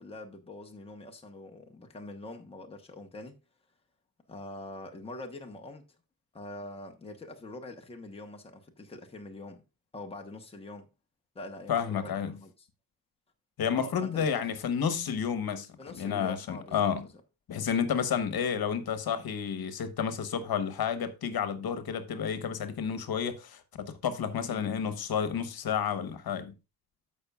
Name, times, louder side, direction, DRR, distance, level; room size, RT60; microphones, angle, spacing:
voice 1, 0.0-3.4 4.3-5.9 6.3-9.6 9.9-10.9 11.3-12.7 13.7-14.5 15.8-17.2 24.5-24.7, left 2 dB, 15° left, 1.1 m, -44 dB
voice 2, 11.7-12.4 13.6-17.1 17.5-26.5, left 7 dB, 70° left, 1.2 m, -31 dB
14.0 x 5.5 x 2.4 m
wide cardioid pair, 175°, 38 cm